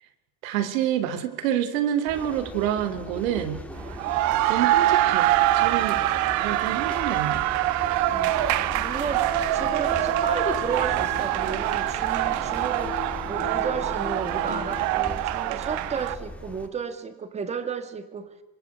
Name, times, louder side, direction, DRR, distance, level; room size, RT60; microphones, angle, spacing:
voice 1, 0.4-3.6 4.5-6.0 6.4-7.4 14.5-14.6, right 10 dB, 85° right, 11 dB, 3.5 m, -27 dB
sound 1, 2.1-16.7, left 1 dB, 5° left, 2.1 m, -39 dB
sound 2, 3.8-16.1, right 14 dB, 45° right, 1.2 m, -24 dB
sound 3, 8.3-14.9, left 8 dB, 30° left, 3.2 m, -41 dB
voice 2, 8.7-18.3, right 6 dB, 15° right, 10 dB, 2.0 m, -33 dB
26.0 x 25.0 x 8.3 m, 0.94 s
cardioid pair, 170°, 39 cm